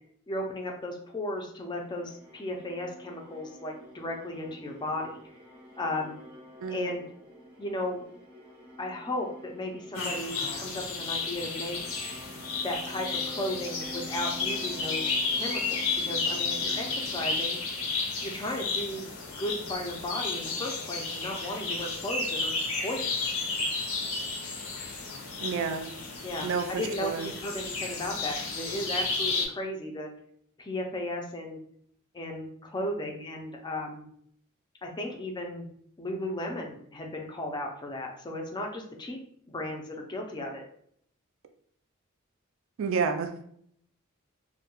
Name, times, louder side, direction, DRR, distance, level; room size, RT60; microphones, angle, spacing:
voice 1, 0.3-5.2 5.8-6.1 6.7-7.1 7.6-8.0 8.8-11.8 12.6-17.6 18.2-19.1 19.4-23.3 26.2-30.1 30.6-31.6 32.1-34.1 34.8-35.7 36.0-39.2 39.5-40.6, left 1 dB, 20° left, 1 dB, 0.4 m, -35 dB
sound 1, 1.6-17.9, right 1 dB, 10° right, 0.7 m, -48 dB
voice 2, 6.6-6.9 25.4-25.9 26.4-27.3 42.8-43.5, right 5 dB, 65° right, 6 dB, 0.4 m, -30 dB
sound 2, 9.9-29.5, left 4 dB, 75° left, 0.6 m, -32 dB
2.2 x 2.1 x 2.9 m, 0.65 s
head